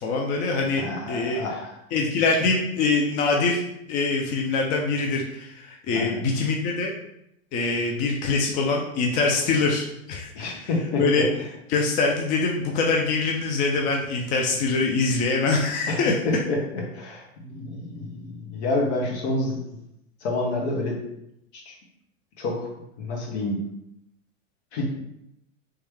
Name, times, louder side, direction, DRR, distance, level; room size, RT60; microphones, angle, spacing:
voice 1, 0.0-1.5 1.9-3.6 3.9-6.9 7.5-10.7 11.0-11.3 11.7-16.1, left 3 dB, 20° left, 0 dB, 0.4 m, -24 dB
voice 2, 0.8-1.7 5.9-6.2 10.3-11.3 15.9-16.0 16.3-16.6 16.9-19.8 20.2-21.0 21.5-21.7 22.4-22.7 23.0-23.6 24.7-24.8, left 2 dB, 55° left, -1 dB, 1.3 m, -28 dB
3.2 x 3.0 x 3.4 m, 0.80 s
hypercardioid pair, 110°, 40 cm